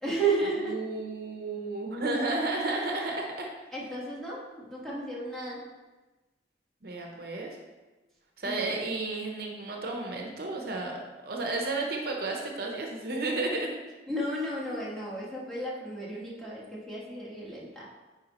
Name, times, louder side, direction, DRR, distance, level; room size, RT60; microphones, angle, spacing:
voice 1, 0.0-0.8 3.7-5.6 8.4-8.8 14.1-17.9, right 2 dB, ahead, -7 dB, 1.3 m, -33 dB
voice 2, 0.6-3.5 6.8-7.5 8.4-13.7, right 2 dB, 55° right, 1 dB, 0.8 m, -32 dB
9.1 x 4.5 x 3.0 m, 1.2 s
head